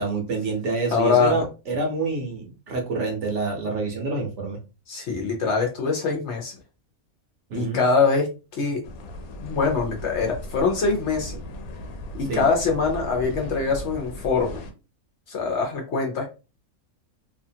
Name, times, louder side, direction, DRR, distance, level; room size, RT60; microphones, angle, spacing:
voice 1, 0.0-4.6 7.5-7.8 12.2-12.4, right 3 dB, 60° right, 1 dB, 1.0 m, -27 dB
voice 2, 0.9-1.4 4.9-6.5 7.5-8.3 8.5-8.8 9.4-11.4 12.2-14.6 15.3-16.3, left 4 dB, 60° left, 1 dB, 0.9 m, -23 dB
sound 1, 8.8-14.7, left 1 dB, 85° left, 1.1 m, -37 dB
2.7 x 2.3 x 2.6 m, 0.31 s
omnidirectional pair, 1.5 m